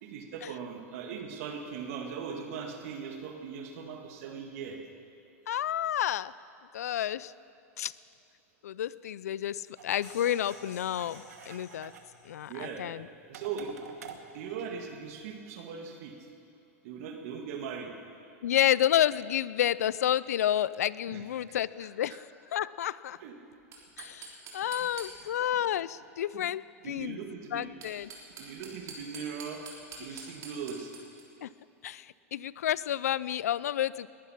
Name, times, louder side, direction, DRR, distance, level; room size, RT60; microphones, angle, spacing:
voice 1, 0.0-4.8 12.5-12.9 13.3-13.8 14.3-16.1 16.8-17.9 21.1-21.2 21.8-21.9 23.2-23.3 24.8-24.9 26.3-26.4 26.8-27.7 28.4-29.6 30.0-30.9, right 6 dB, 65° right, 3 dB, 1.8 m, -39 dB
voice 2, 5.5-6.3 6.7-7.3 7.8-7.9 8.6-11.9 12.2-13.1 18.4-23.2 24.0-27.2 27.5-28.1 30.1-30.2 31.4-31.5 31.8-34.1, left 11 dB, 85° left, 19 dB, 0.4 m, -30 dB
sound 1, 9.8-12.8, left 4 dB, 45° left, 4.7 m, -55 dB
sound 2, 9.8-15.3, right 7 dB, 85° right, 1.3 m, -50 dB
sound 3, 23.6-25.5 27.6-31.2, right 4 dB, 40° right, 3.6 m, -46 dB
20.5 x 11.0 x 5.8 m, 2.5 s
hypercardioid pair, 105°, 8 cm